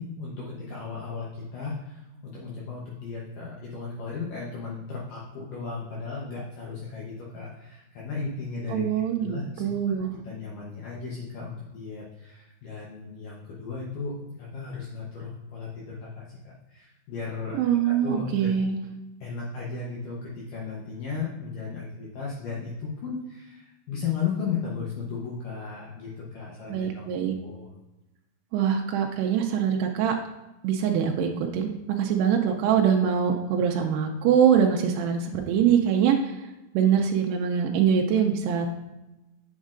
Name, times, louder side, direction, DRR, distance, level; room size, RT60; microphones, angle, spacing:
voice 1, 0.0-8.9 9.2-9.7 10.2-17.6 17.8-18.5 19.2-27.0 27.4-27.7, left 5 dB, 75° left, -4 dB, 2.0 m, -35 dB
voice 2, 8.7-10.1 17.5-18.8 26.7-27.3 28.5-30.2 30.6-36.5 36.7-38.7, right 8 dB, 85° right, 2 dB, 2.5 m, -23 dB
8.0 x 6.3 x 2.5 m, 1.0 s
omnidirectional pair, 4.9 m